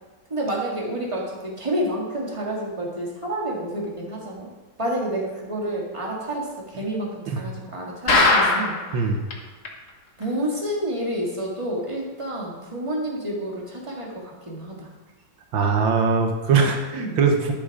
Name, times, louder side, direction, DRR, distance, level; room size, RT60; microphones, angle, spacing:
voice 1, 0.3-4.5 4.8-8.8 10.2-14.9 16.9-17.2, right 1 dB, 15° right, -3 dB, 2.2 m, -29 dB
sound 1, 8.1-8.9 9.3-9.4 9.6-9.7 10.2-10.3, left 3 dB, 45° left, 1.6 m, -18 dB
voice 2, 15.5-17.5, right 5 dB, 85° right, 3 dB, 1.8 m, -21 dB
11.0 x 7.5 x 5.0 m, 1.2 s
omnidirectional pair, 2.1 m